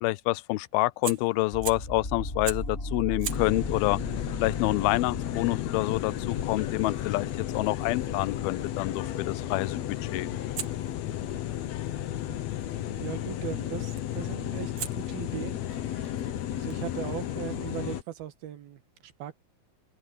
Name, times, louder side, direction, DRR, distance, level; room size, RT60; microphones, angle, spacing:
voice 1, 0.0-4.0 4.4-10.3, left 20 dB, 90° left, 2.5 m, -28 dB
Fire, 1.0-2.0 2.4-2.8 3.2-8.1 10.5-12.7 14.0-14.3 14.8-18.2, right 9 dB, 55° right, 2.0 m, -44 dB
sound 1, 1.5-13.5, left 1 dB, 15° left, 6.7 m, -40 dB
sound 2, 3.3-18.0, left 12 dB, 65° left, 1.8 m, -33 dB
voice 2, 13.0-16.2 16.6-19.4, right 12 dB, 80° right, 3.5 m, -39 dB
open air
omnidirectional pair, 4.2 m